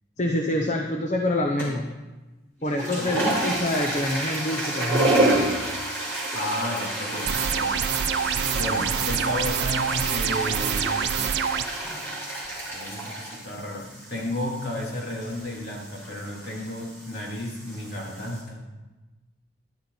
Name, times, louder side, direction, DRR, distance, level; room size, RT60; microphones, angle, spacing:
voice 1, 0.2-1.9 2.6-5.3, left 1 dB, 35° left, 2 dB, 0.9 m, -26 dB
sound 1, 1.6-1.9 2.6-18.4, right 1 dB, 15° left, 4.2 m, -29 dB
voice 2, 6.3-7.8 8.5-11.3 12.7-18.6, left 1 dB, 55° left, -3 dB, 3.2 m, -33 dB
sound 2, 7.3-11.6, right 8 dB, 60° right, 0.4 m, -26 dB
14.0 x 11.5 x 4.1 m, 1.2 s
head